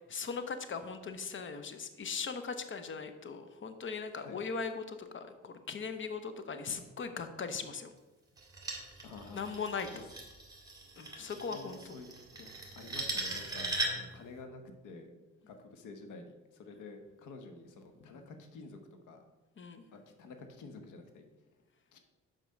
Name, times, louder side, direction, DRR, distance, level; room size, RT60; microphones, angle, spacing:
voice 1, 0.1-7.9 9.3-10.0 11.0-12.0 18.0-18.1 19.6-19.8, left 5 dB, 40° left, 9 dB, 0.9 m, -39 dB
sound 1, 8.4-14.2, right 2 dB, 10° right, 2.0 m, -39 dB
voice 2, 9.0-9.4 9.9-10.0 11.2-15.1 15.5-18.8 19.1-19.2 19.9-21.2 21.9-22.0, left 3 dB, 85° left, 6 dB, 1.2 m, -50 dB
5.8 x 5.2 x 6.4 m, 1.1 s
cardioid pair, 90°, 30 cm